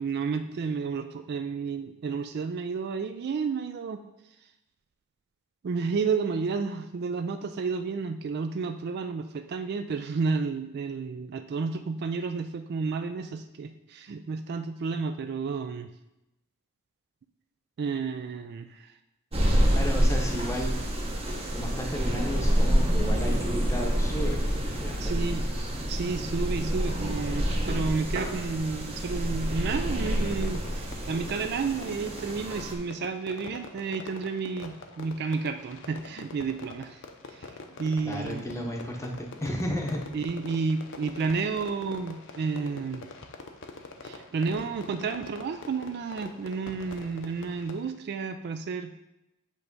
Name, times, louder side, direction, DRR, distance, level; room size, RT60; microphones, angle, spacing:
voice 1, 0.0-4.0 5.6-15.9 17.8-18.9 25.0-25.4 25.9-37.0 37.3-37.5 37.8-38.4 40.1-43.1 44.0-48.9, right 4 dB, 45° right, 9 dB, 0.3 m, -31 dB
sound 1, 19.3-32.7, equal, 25° right, 0.9 m, -27 dB
voice 2, 19.7-20.8 21.5-24.4 24.8-25.5 38.0-40.0, equal, 15° left, 1 dB, 0.8 m, -33 dB
Fireworks, 30.0-47.9, left 3 dB, 55° left, 0.7 m, -45 dB
8.3 x 3.3 x 5.2 m, 0.91 s
head